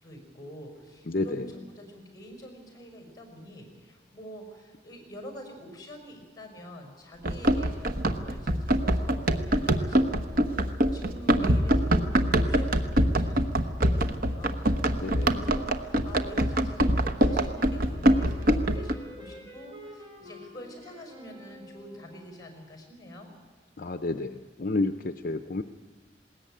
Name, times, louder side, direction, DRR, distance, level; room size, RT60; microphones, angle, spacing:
voice 1, 0.0-23.3, equal, 20° left, 4 dB, 5.3 m, -46 dB
voice 2, 1.1-1.4 11.4-11.5 15.0-15.4 23.8-24.3 24.6-25.6, left 2 dB, 55° left, 9 dB, 0.6 m, -30 dB
Run, 7.2-18.9, right 1 dB, 55° right, 1.1 m, -24 dB
Wind instrument woodwind instrument, 17.3-22.3, equal, 30° right, 4.9 m, -48 dB
20.5 x 18.5 x 9.0 m, 1.5 s
head